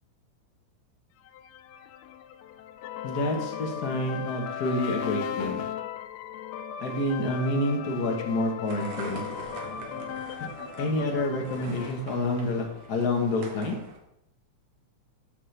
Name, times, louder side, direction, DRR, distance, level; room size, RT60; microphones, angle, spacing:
sound 1, 1.3-13.0, left 9 dB, 85° left, 1.5 m, -37 dB
voice 1, 3.0-5.6 6.8-9.2 10.8-13.8, left 1 dB, 55° left, 1 dB, 1.1 m, -28 dB
sound 2, 8.7-14.0, right 5 dB, 85° right, 2.7 m, -44 dB
13.0 x 5.2 x 3.3 m, 0.81 s
omnidirectional pair, 3.5 m